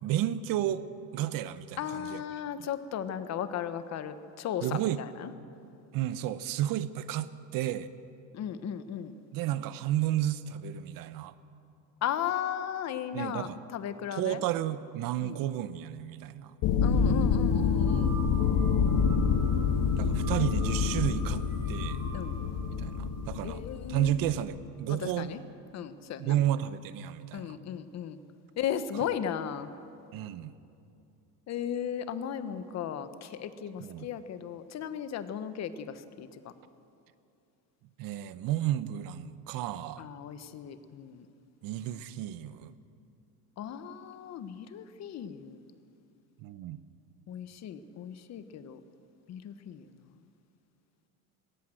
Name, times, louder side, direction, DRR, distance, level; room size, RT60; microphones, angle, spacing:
voice 1, 0.0-0.8 1.1-2.7 4.6-5.0 5.9-7.9 9.3-11.3 13.1-13.6 14.1-16.5 20.0-22.0 22.8-23.6 23.9-25.3 26.2-27.6 28.9-29.1 30.1-30.5 33.8-34.1 38.0-40.0 41.6-42.7 46.4-46.8, right 12 dB, 65° right, 14 dB, 0.9 m, -32 dB
voice 2, 1.8-5.3 8.3-9.1 12.0-14.4 15.2-15.4 16.8-18.2 22.1-22.4 23.4-24.4 24.9-25.4 25.7-26.4 27.3-28.2 28.6-29.7 31.5-36.4 40.0-41.3 43.6-45.6 47.3-48.8 49.3-49.9, left 9 dB, 45° left, 11 dB, 1.2 m, -36 dB
sound 1, 16.6-24.4, left 6 dB, 65° left, 1.6 m, -27 dB
sound 2, 17.5-24.3, right 3 dB, 10° right, 6.4 m, -47 dB
20.5 x 18.0 x 7.8 m, 2.6 s
cardioid pair, 145°, 36 cm